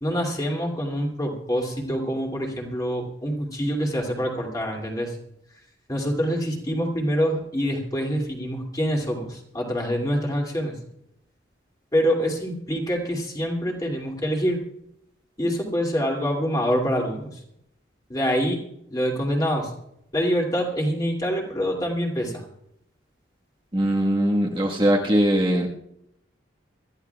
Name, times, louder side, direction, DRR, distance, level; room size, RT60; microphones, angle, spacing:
voice 1, 0.0-5.2 5.9-10.7 11.9-14.6 15.4-17.4 18.1-18.6 18.9-19.7 20.1-22.4, equal, 20° left, 0 dB, 2.5 m, -25 dB
voice 2, 23.7-25.7, equal, 25° right, -2 dB, 1.5 m, -21 dB
25.5 x 14.0 x 2.3 m, 0.77 s
head